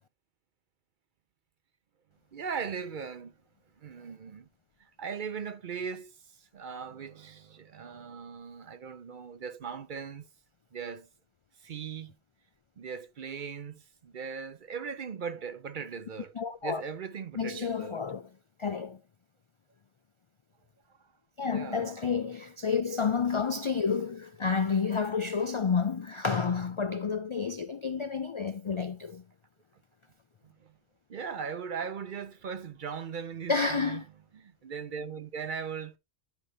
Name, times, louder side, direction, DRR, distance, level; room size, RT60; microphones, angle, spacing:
voice 1, 2.3-3.3 3.8-4.5 4.8-10.3 10.7-11.1 11.6-12.2 12.8-16.3 16.6-18.1 21.4-22.1 30.4-30.8 31.1-34.0 34.3-36.0, right 6 dB, 55° right, 0.7 m, -39 dB
voice 2, 16.4-16.8 17.4-18.3 18.6-19.0 21.4-29.2 33.5-34.0, left 5 dB, 50° left, 0.3 m, -30 dB
10.5 x 5.5 x 3.2 m
omnidirectional pair, 1.1 m